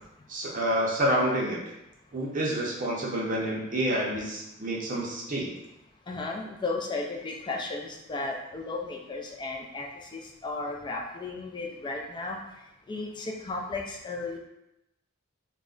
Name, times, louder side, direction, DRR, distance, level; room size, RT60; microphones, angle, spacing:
voice 1, 0.3-1.6 2.1-5.5, right 1 dB, 40° right, -3 dB, 0.5 m, -28 dB
voice 2, 6.1-12.4 12.9-14.4, left 3 dB, 20° left, 1 dB, 0.3 m, -34 dB
2.3 x 2.0 x 3.6 m, 0.90 s
head